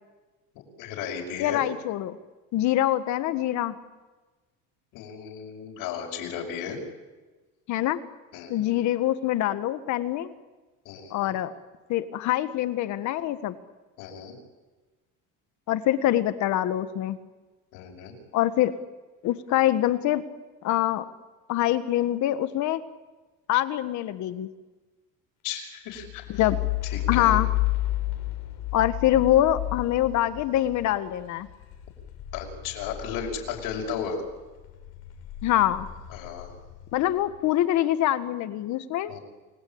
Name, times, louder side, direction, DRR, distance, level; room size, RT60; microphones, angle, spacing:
voice 1, 0.8-1.6 4.9-6.8 8.3-8.7 10.8-11.3 14.0-14.4 17.7-18.1 25.4-26.4 26.8-27.4 32.3-34.2 36.1-36.5 39.1-39.2, left 7 dB, 75° left, 1 dB, 5.7 m, -35 dB
voice 2, 1.4-2.2 2.5-3.8 7.7-8.0 8.5-10.3 11.1-11.5 11.9-13.5 15.7-17.2 18.3-18.7 19.2-20.2 20.6-21.0 21.5-22.8 23.5-24.5 26.3-26.6 27.1-27.5 28.7-31.5 35.4-35.9 36.9-39.1, left 13 dB, 50° left, 11 dB, 1.6 m, -24 dB
sound 1, 26.0-34.2 34.6-37.2, left 17 dB, 90° left, 4.0 m, -32 dB
29.5 x 20.0 x 8.8 m, 1.2 s
cardioid pair, 175°, 35 cm